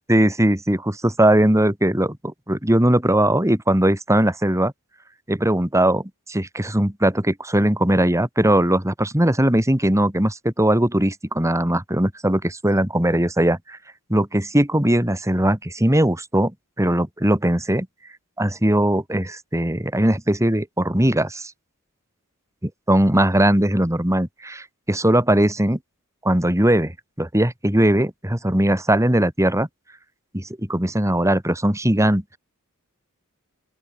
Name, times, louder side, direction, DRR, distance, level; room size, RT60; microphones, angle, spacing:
voice 1, 0.1-4.7 5.3-13.8 14.1-16.5 16.8-17.9 18.4-21.5 22.9-25.8 26.2-29.7 30.3-32.4, right 1 dB, 15° right, 3.1 m, -20 dB
open air
head